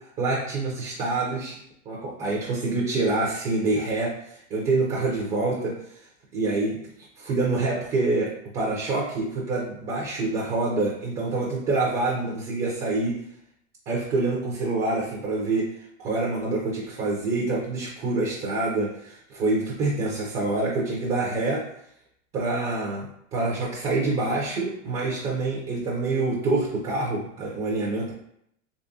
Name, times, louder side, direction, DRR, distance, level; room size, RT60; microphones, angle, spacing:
voice 1, 0.2-1.6 1.9-5.7 6.3-6.8 7.2-13.2 13.9-15.7 16.0-21.7 22.3-28.1, right 3 dB, 20° right, -3 dB, 0.3 m, -26 dB
3.5 x 3.1 x 2.6 m, 0.73 s
supercardioid pair, 150°, 38 cm